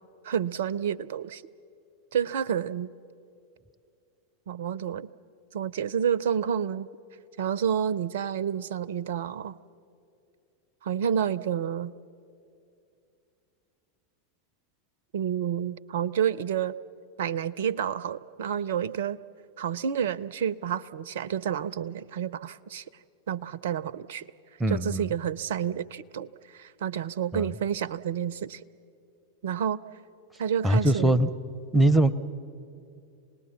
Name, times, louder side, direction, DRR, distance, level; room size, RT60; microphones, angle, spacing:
voice 1, 0.2-1.4 2.1-2.9 4.5-5.1 5.5-6.9 7.4-9.6 10.8-11.9 15.1-16.8 17.2-19.2 19.6-22.8 23.3-24.3 24.7-28.6 29.4-29.8 30.4-31.2, right 8 dB, 55° right, 18 dB, 0.5 m, -29 dB
voice 2, 24.6-25.1 27.3-27.5 30.6-31.3 31.7-32.1, right 1 dB, 5° right, 15 dB, 0.7 m, -22 dB
26.5 x 19.0 x 7.3 m, 2.5 s
figure-of-eight pair, 90°, 0 cm